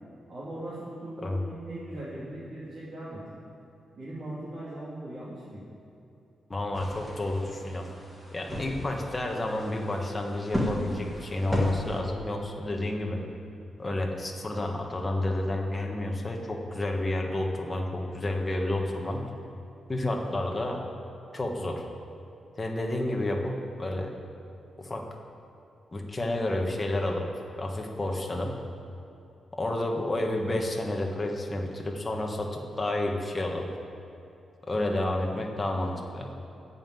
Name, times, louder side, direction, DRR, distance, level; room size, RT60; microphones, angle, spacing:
voice 1, 0.3-3.2 4.0-5.6, right 1 dB, 40° right, -9 dB, 2.5 m, -39 dB
voice 2, 6.5-7.8 8.3-13.2 13.8-19.2 19.9-20.8 21.3-21.8 22.6-24.1 24.8-25.1 25.9-27.3 27.6-28.5 29.5-33.7 34.7-36.3, left 1 dB, 20° left, 1 dB, 1.3 m, -30 dB
sound 1, 6.7-12.0, equal, 5° right, 1.8 m, -35 dB
13.5 x 5.6 x 9.2 m, 2.7 s
wide cardioid pair, 150°, 0 cm